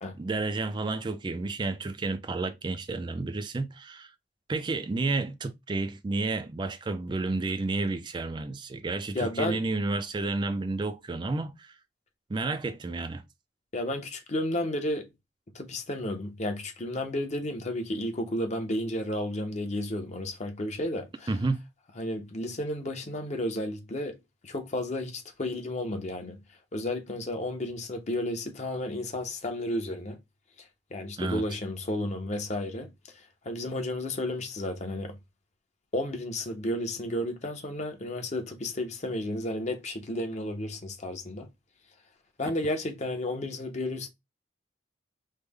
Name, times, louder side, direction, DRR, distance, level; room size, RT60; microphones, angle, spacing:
voice 1, 0.2-4.1 4.5-11.7 12.3-13.2 21.3-21.6 31.2-31.4, right 3 dB, 25° right, 0.3 m, -31 dB
voice 2, 9.1-9.6 13.7-15.1 15.5-21.3 22.0-24.2 24.4-26.4 26.7-30.2 30.9-35.2 35.9-41.5 42.4-44.1, left 1 dB, 40° left, 0.7 m, -32 dB
3.2 x 2.1 x 3.4 m
head